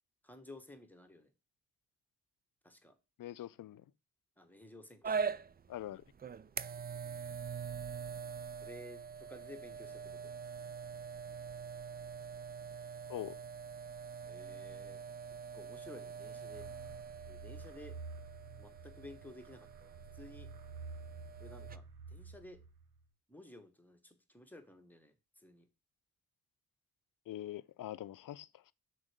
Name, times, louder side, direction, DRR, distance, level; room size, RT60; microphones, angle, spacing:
voice 1, 0.2-1.3 2.6-3.0 4.4-5.2 8.6-10.3 14.3-15.0 15.5-16.7 17.3-18.0 18.6-20.5 21.4-22.6 23.3-25.7, left 1 dB, 5° left, 1.5 m, -54 dB
voice 2, 3.2-3.8 5.7-6.0 13.1-13.4 27.3-28.6, left 13 dB, 60° left, 0.6 m, -43 dB
sound 1, 5.0-21.8, right 6 dB, 25° right, 0.4 m, -44 dB
sound 2, 16.5-23.0, right 4 dB, 85° right, 1.0 m, -50 dB
6.2 x 4.6 x 6.5 m
cardioid pair, 75°, 37 cm